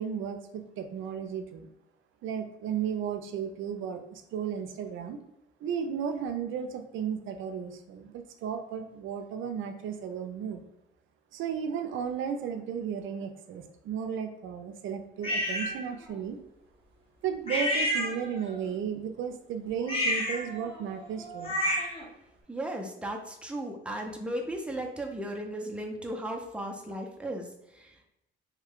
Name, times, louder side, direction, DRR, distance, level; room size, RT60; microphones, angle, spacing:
voice 1, 0.0-1.7 2.2-5.2 5.6-10.7 11.3-16.4 17.2-21.6, right 7 dB, 80° right, 6 dB, 0.5 m, -34 dB
sound 1, 15.2-15.7 17.5-18.5 19.8-22.0, equal, 30° left, 1.2 m, -30 dB
voice 2, 22.5-28.1, right 1 dB, 5° right, 1 dB, 0.6 m, -36 dB
3.1 x 2.3 x 3.5 m, 0.86 s
cardioid pair, 90°, 20 cm